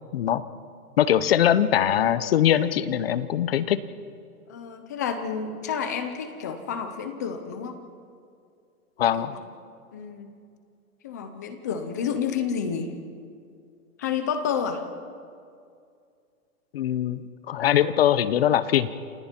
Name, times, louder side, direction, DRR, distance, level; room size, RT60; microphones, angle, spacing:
voice 1, 1.0-3.8 9.0-9.3 16.7-17.2 17.5-18.9, left 10 dB, 45° left, 15 dB, 0.8 m, -22 dB
voice 2, 4.5-7.8 9.2-9.4 9.9-10.4 11.0-12.9 14.0-14.8, left 7 dB, 15° left, 8 dB, 0.5 m, -30 dB
29.0 x 26.5 x 4.4 m, 2.3 s
hypercardioid pair, 170°, 43 cm